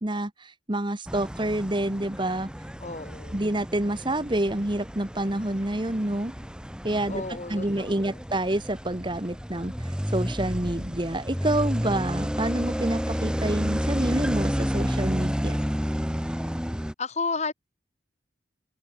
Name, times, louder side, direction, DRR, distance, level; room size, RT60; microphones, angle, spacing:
voice 1, 0.0-2.5 3.3-6.3 6.8-7.2 7.5-15.6, right 1 dB, 25° right, 1.4 m, -28 dB
sound 1, 1.1-16.9, equal, 5° right, 3.1 m, -31 dB
voice 2, 2.8-3.4 7.1-8.2 17.0-17.5, left 4 dB, 35° left, 2.5 m, -32 dB
head